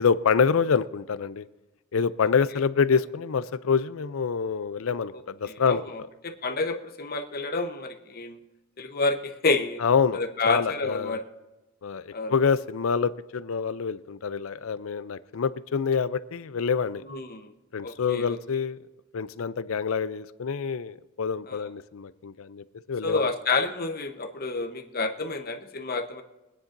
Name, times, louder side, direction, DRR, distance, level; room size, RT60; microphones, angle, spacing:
voice 1, 0.0-1.4 1.9-5.8 9.8-11.2 11.8-17.0 17.7-18.8 19.1-23.3, left 6 dB, 70° left, 15 dB, 0.5 m, -26 dB
voice 2, 5.5-8.4 8.8-9.8 10.1-11.2 12.1-12.3 17.0-17.5 17.8-18.4 21.5-21.7 23.0-26.2, left 3 dB, 45° left, 5 dB, 1.0 m, -29 dB
23.5 x 10.0 x 2.6 m, 1.0 s
head